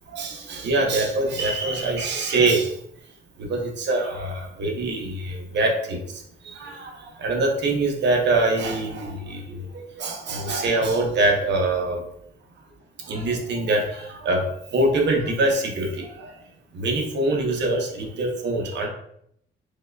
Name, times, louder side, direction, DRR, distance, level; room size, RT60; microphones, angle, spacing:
voice 1, 0.1-2.8 3.4-12.0 13.0-16.3 16.7-18.9, right 2 dB, 60° right, 1 dB, 0.9 m, -24 dB
4.7 x 2.3 x 2.3 m, 0.71 s
cardioid pair, 90°, 20 cm